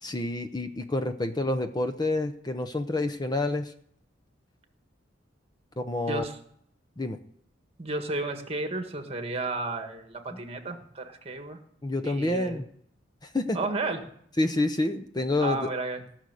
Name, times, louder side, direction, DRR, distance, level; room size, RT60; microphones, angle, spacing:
voice 1, 0.0-3.7 5.8-6.2 7.0-7.2 10.3-10.4 11.8-12.6 13.2-13.6 14.4-15.7, left 2 dB, 20° left, 6 dB, 0.7 m, -28 dB
voice 2, 7.8-11.6 12.0-12.6 13.5-14.0 15.4-16.0, right 2 dB, 35° right, 6 dB, 1.7 m, -32 dB
17.5 x 6.4 x 8.3 m, 0.66 s
head